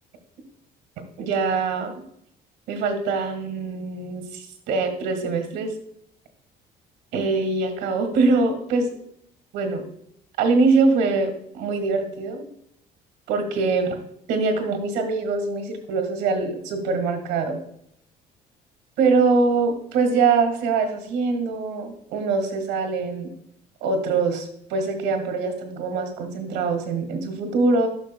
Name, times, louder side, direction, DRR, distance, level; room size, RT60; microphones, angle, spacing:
voice 1, 1.2-1.9 2.7-5.7 7.1-8.9 9.5-9.8 10.4-12.5 13.3-14.0 14.3-17.6 19.0-23.3 23.8-27.9, right 4 dB, 90° right, 6 dB, 1.7 m, -23 dB
11.5 x 6.6 x 2.2 m, 0.70 s
cardioid pair, 110°, 17 cm